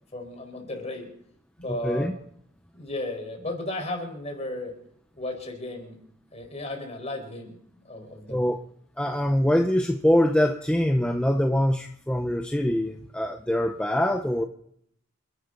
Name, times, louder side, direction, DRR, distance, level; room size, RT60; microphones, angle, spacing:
voice 1, 0.1-1.1 1.6-2.1 2.7-4.7 5.1-6.0 6.3-7.6 7.8-8.4, left 2 dB, 30° left, 2 dB, 4.7 m, -34 dB
voice 2, 9.0-14.4, left 1 dB, 5° left, 4 dB, 0.7 m, -23 dB
28.5 x 11.5 x 4.0 m, 0.70 s
head